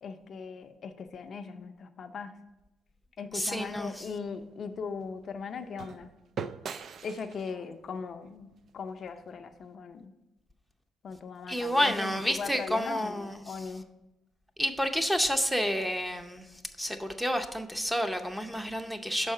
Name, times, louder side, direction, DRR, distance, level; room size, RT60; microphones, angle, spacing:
voice 1, 0.0-2.4 3.2-6.1 7.0-8.5 8.7-10.1 11.0-13.8, left 5 dB, 55° left, 7 dB, 0.5 m, -39 dB
voice 2, 3.3-4.0 11.5-13.6 14.6-19.3, equal, 5° right, 6 dB, 0.6 m, -30 dB
sound 1, 3.6-9.7, right 6 dB, 60° right, 0.3 m, -45 dB
6.4 x 4.7 x 5.4 m, 1.0 s
cardioid pair, 90°, 0 cm